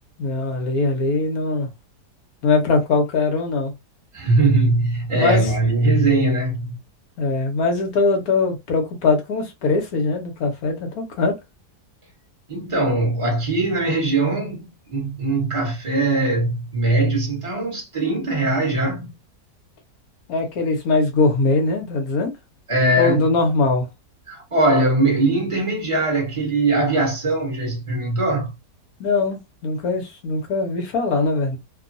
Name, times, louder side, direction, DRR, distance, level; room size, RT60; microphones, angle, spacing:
voice 1, 0.2-1.7 2.4-3.7 5.1-5.5 7.2-11.4 20.3-22.3 23.0-23.9 29.0-31.6, left 3 dB, 65° left, 1.2 m, -21 dB
voice 2, 4.1-6.8 12.5-19.1 22.7-23.3 24.3-28.5, right 2 dB, 20° right, 1.0 m, -21 dB
3.0 x 2.2 x 2.5 m
omnidirectional pair, 1.8 m